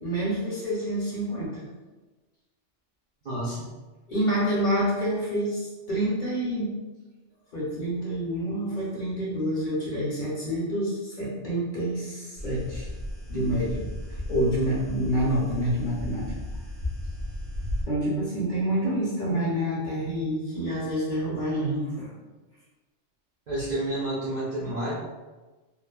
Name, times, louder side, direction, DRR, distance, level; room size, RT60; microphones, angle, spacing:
voice 1, 0.0-1.6 4.1-6.7 7.5-12.9 13.3-16.3 17.9-22.1, right 1 dB, 50° left, -7 dB, 0.7 m, -28 dB
voice 2, 3.2-3.7 18.8-19.0 19.3-19.4 23.5-24.9, right 1 dB, 50° right, -8 dB, 0.6 m, -30 dB
sound 1, 12.4-17.8, left 1 dB, 65° right, 1.2 m, -35 dB
3.0 x 2.0 x 2.2 m, 1.2 s
omnidirectional pair, 1.2 m